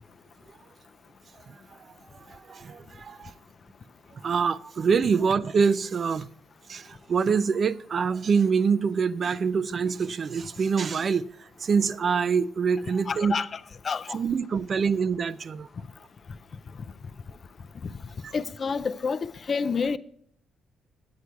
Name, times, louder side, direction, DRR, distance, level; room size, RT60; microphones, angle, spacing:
voice 1, 2.3-3.3 4.1-6.3 6.7-13.4 14.1-15.7 18.2-18.3, right 5 dB, 45° right, 0.5 m, -25 dB
voice 2, 13.1-13.6 13.8-14.2 18.3-20.0, left 5 dB, 40° left, 0.5 m, -28 dB
9.5 x 8.2 x 4.6 m
cardioid pair, 90°, 0 cm